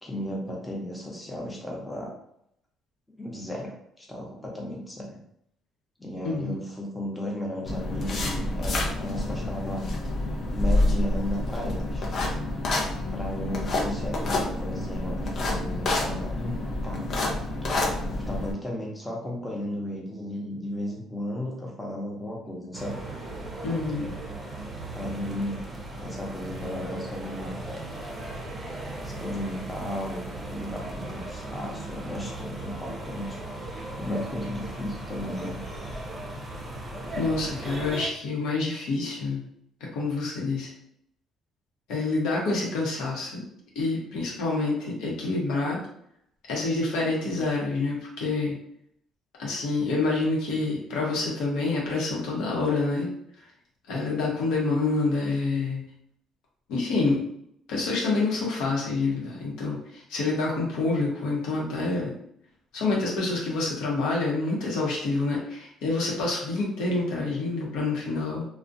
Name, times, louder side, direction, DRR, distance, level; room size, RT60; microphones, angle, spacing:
voice 1, 0.0-2.1 3.2-5.2 6.0-9.8 10.5-12.0 13.1-17.3 17.7-23.0 24.9-25.6 26.0-27.6 29.0-35.6, left 1 dB, 10° left, -2 dB, 0.7 m, -35 dB
voice 2, 6.2-6.6 23.6-24.1 37.2-39.5 39.9-40.7 41.9-43.4 43.7-45.8 46.5-48.6 49.4-53.1 53.9-55.8 56.7-57.2 57.7-62.1 62.7-68.5, left 3 dB, 85° left, -3 dB, 0.8 m, -27 dB
sound 1, 7.7-18.5, left 2 dB, 50° left, 0.6 m, -28 dB
sound 2, 22.7-38.1, right 2 dB, 30° right, 0.5 m, -37 dB
2.3 x 2.1 x 2.6 m, 0.72 s
cardioid pair, 95°, 0 cm